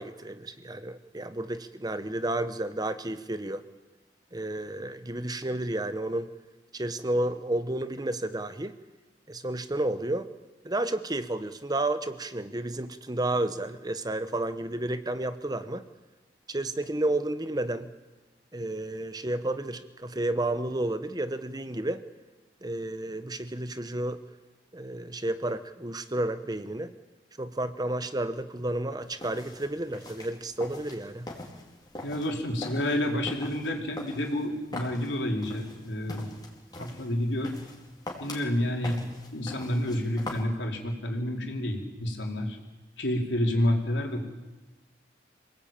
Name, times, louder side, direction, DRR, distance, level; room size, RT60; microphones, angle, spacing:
voice 1, 0.0-3.6 4.3-6.3 6.7-8.7 9.3-10.3 10.6-15.8 16.5-17.9 18.5-22.0 22.6-24.2 24.7-26.9 27.4-31.3, right 1 dB, 20° right, 11 dB, 1.0 m, -31 dB
sound 1, 29.0-40.4, left 2 dB, 25° left, 4.2 m, -43 dB
voice 2, 32.0-36.3 36.8-37.5 38.2-39.0 39.3-42.6 43.0-44.3, left 1 dB, 85° left, 2 dB, 4.2 m, -29 dB
26.5 x 18.5 x 9.0 m, 1.2 s
head